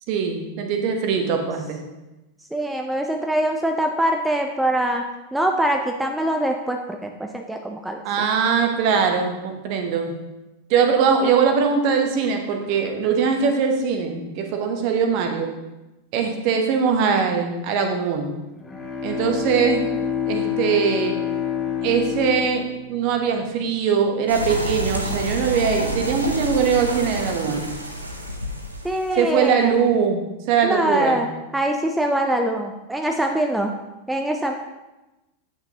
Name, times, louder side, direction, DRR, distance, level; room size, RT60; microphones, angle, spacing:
voice 1, 0.1-1.8 8.0-10.1 10.7-15.5 16.1-18.3 19.0-19.8 20.3-21.2 21.8-27.7 29.2-30.2 30.5-31.2, right 6 dB, 45° right, 4 dB, 0.9 m, -21 dB
voice 2, 2.5-5.0 5.3-8.0 28.8-30.0 30.6-33.7 34.1-34.5, right 1 dB, 5° right, 3 dB, 0.4 m, -23 dB
Bowed string instrument, 18.5-24.1, left 8 dB, 15° left, 0.9 m, -28 dB
sound 1, 24.3-29.7, equal, 85° right, 0.7 m, -29 dB
8.6 x 5.8 x 2.8 m, 1.0 s
figure-of-eight pair, 90°, 0 cm